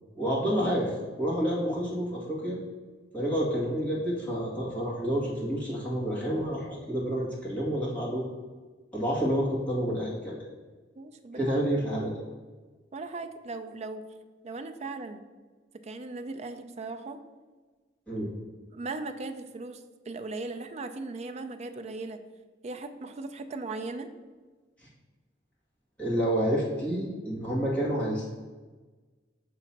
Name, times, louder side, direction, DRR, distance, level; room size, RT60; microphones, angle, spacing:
voice 1, 0.2-2.6 3.1-8.2 8.9-10.4 11.4-12.1 18.1-18.3 26.0-28.2, equal, 5° left, -7 dB, 1.8 m, -29 dB
voice 2, 11.0-11.6 12.9-14.0 14.4-15.2 15.8-17.2 18.7-22.2 22.6-24.1, right 3 dB, 35° right, 8 dB, 0.4 m, -38 dB
6.8 x 3.0 x 5.8 m, 1.3 s
head